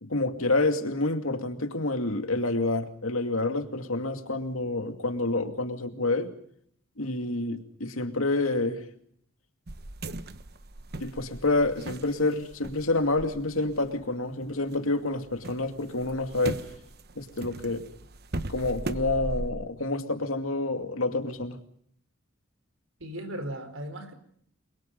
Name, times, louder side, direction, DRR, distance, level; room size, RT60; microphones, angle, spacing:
voice 1, 0.0-6.3 7.0-8.8 11.0-16.6 17.2-17.8 18.5-21.6, left 2 dB, 80° left, 6 dB, 2.4 m, -28 dB
sound 1, 9.7-14.8 15.1-19.5, right 2 dB, 50° right, 1.2 m, -39 dB
voice 2, 23.0-24.1, right 1 dB, 70° right, 10 dB, 4.5 m, -36 dB
29.5 x 23.0 x 5.4 m, 0.64 s
head